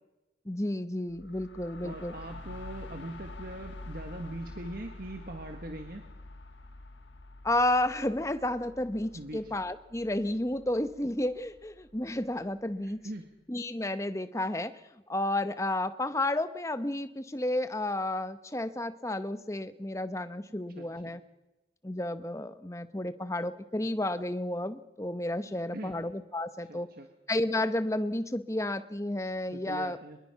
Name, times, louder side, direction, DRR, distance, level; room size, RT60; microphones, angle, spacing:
voice 1, 0.5-2.1 7.4-13.0 13.5-14.8 15.1-21.2 21.8-26.9 27.3-30.0, left 1 dB, 15° left, 11 dB, 0.9 m, -31 dB
sound 1, 1.1-12.7, left 2 dB, 85° left, 1.4 m, -48 dB
voice 2, 1.8-6.0 9.1-9.5 12.8-13.2 20.8-21.2 25.4-25.9 26.7-27.1 29.5-30.2, right 1 dB, 50° right, 4 dB, 1.6 m, -42 dB
24.0 x 22.0 x 5.8 m, 1.0 s
head